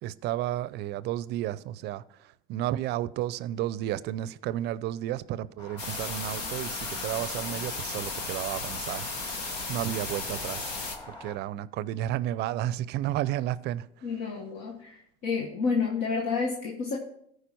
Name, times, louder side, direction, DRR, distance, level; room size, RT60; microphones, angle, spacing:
voice 1, 0.0-9.1 9.7-10.7 11.1-14.1, right 13 dB, 55° right, 0.5 m, -32 dB
sound 1, 5.6-11.4, left 1 dB, 20° left, 2.4 m, -45 dB
sound 2, 5.8-11.0, left 3 dB, 85° left, 1.5 m, -35 dB
voice 2, 14.0-15.0 15.2-17.0, left 5 dB, 70° left, 1.3 m, -29 dB
14.5 x 4.9 x 4.5 m
supercardioid pair, 90°, 20 cm